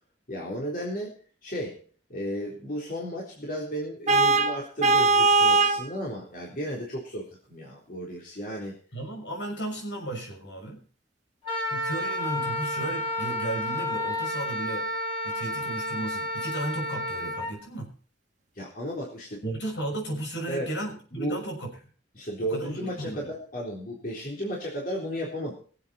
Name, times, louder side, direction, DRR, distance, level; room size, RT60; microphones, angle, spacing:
voice 1, 0.3-1.8 2.1-8.8 15.4-15.7 18.6-19.4 20.5-20.7 21.1-21.4 22.1-25.5, equal, 50° left, -3 dB, 3.8 m, -34 dB
Vehicle horn car horn honking, 4.1-5.8, right 3 dB, 40° right, 1.7 m, -20 dB
voice 2, 8.9-10.8 11.7-14.9 15.2-17.9 19.4-21.7 22.5-23.3, right 1 dB, 75° left, 1 dB, 6.2 m, -34 dB
Wind instrument woodwind instrument, 11.4-17.5, left 1 dB, 30° left, 6.0 m, -31 dB
23.0 x 8.2 x 4.3 m, 0.42 s
head